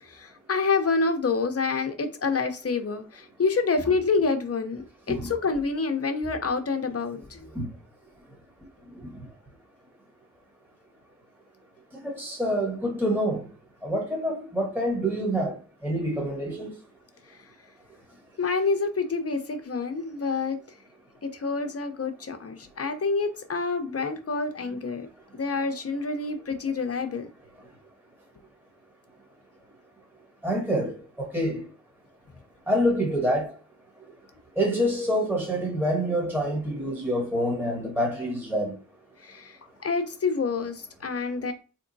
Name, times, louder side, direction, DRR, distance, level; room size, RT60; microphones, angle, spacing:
voice 1, 0.0-7.5 17.3-17.4 18.4-20.6 21.2-25.1 25.3-27.3 39.2-41.5, left 4 dB, 50° left, 0.7 m, -27 dB
voice 2, 12.0-13.4 13.8-15.5 15.8-16.7 30.4-31.6 32.7-33.5 34.6-38.8, equal, 5° right, 1.1 m, -26 dB
3.5 x 2.9 x 2.6 m
cardioid pair, 55°, 32 cm